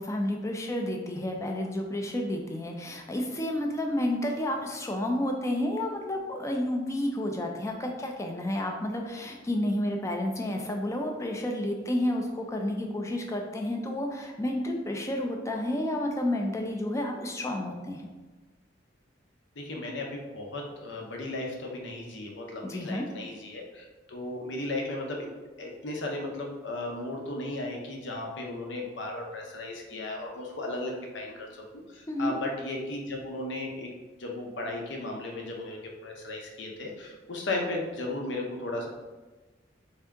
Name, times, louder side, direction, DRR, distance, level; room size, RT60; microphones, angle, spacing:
voice 1, 0.0-18.1 22.6-23.0 32.1-32.4, left 1 dB, 15° left, 2 dB, 0.4 m, -30 dB
voice 2, 19.6-25.3 25.6-31.6 31.9-33.9 34.2-38.9, left 2 dB, 65° left, 1 dB, 0.7 m, -35 dB
3.4 x 2.7 x 3.5 m, 1.2 s
head